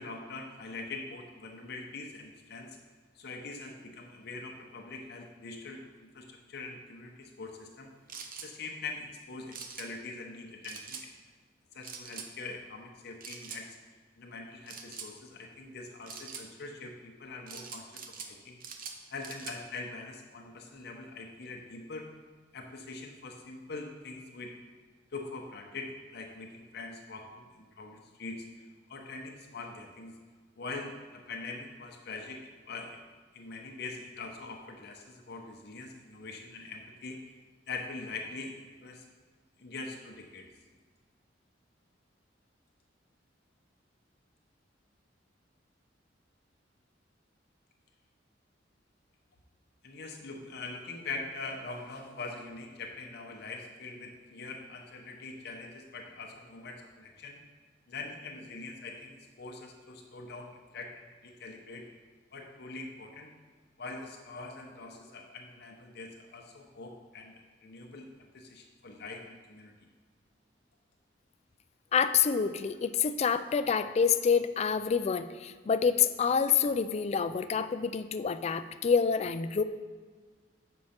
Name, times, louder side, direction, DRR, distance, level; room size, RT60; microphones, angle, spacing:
voice 1, 0.0-2.8 3.1-7.9 8.4-11.1 11.7-13.8 14.2-18.6 19.1-22.1 22.5-24.5 25.1-28.5 28.9-30.2 30.6-33.0 33.3-37.2 37.7-39.1 39.6-40.5 49.8-57.4 57.9-61.9 62.3-63.3 63.8-68.1 68.3-69.7, left 3 dB, 60° left, 2 dB, 0.7 m, -43 dB
sound 1, 8.1-8.5 9.5-9.9 10.6-11.1 11.8-12.3 13.2-13.6 14.7-15.1 16.1-16.5 17.5-18.3 18.6-19.6, right 6 dB, 50° right, 0.7 m, -43 dB
voice 2, 71.9-79.6, left 6 dB, 35° left, 11 dB, 0.3 m, -27 dB
6.3 x 4.6 x 5.7 m, 1.5 s
head